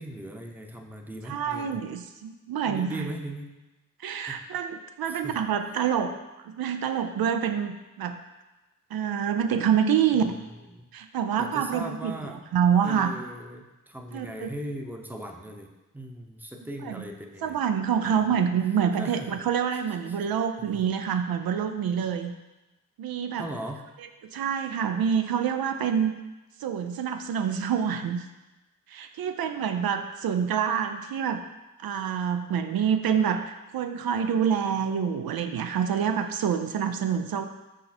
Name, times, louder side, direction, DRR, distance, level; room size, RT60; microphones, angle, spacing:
voice 1, 0.0-1.8 2.6-3.5 4.3-4.4 5.1-5.4 10.1-10.3 10.7-10.9 11.4-12.4 12.8-17.6 18.0-18.3 19.0-19.4 20.7-20.8 23.4-23.8, right 1 dB, 5° right, 3 dB, 0.7 m, -38 dB
voice 2, 1.2-3.1 4.0-6.1 6.4-7.7 8.0-8.2 8.9-10.3 10.9-13.1 14.1-14.5 16.8-17.1 17.4-22.3 23.0-23.5 24.3-26.1 26.6-28.2 28.9-31.4 31.8-37.5, right 7 dB, 85° right, 7 dB, 0.5 m, -27 dB
6.4 x 5.5 x 4.2 m, 1.1 s
wide cardioid pair, 115°, 35 cm